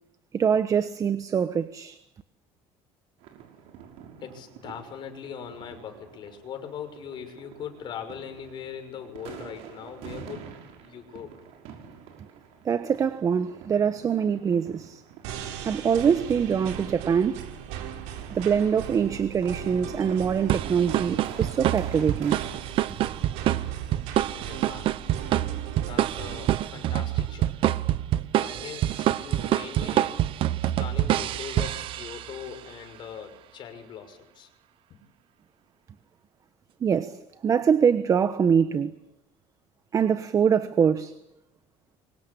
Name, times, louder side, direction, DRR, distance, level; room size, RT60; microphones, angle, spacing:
voice 1, 0.3-2.0 12.6-15.0 15.6-17.4 18.3-22.4 36.8-39.0 39.9-41.1, right 7 dB, 30° right, 1.2 m, -24 dB
sound 1, 3.2-22.8, right 7 dB, 75° right, 5.7 m, -47 dB
voice 2, 4.2-10.6 10.8-11.3 24.3-24.9 25.9-27.8 28.4-30.3 30.6-34.5 34.9-35.0, left 8 dB, 45° left, 6.0 m, -41 dB
sound 2, 15.2-26.5, right 9 dB, 90° right, 4.5 m, -38 dB
sound 3, 20.5-32.4, right 13 dB, 55° right, 1.1 m, -27 dB
27.0 x 24.5 x 8.7 m
cardioid pair, 140°, 11 cm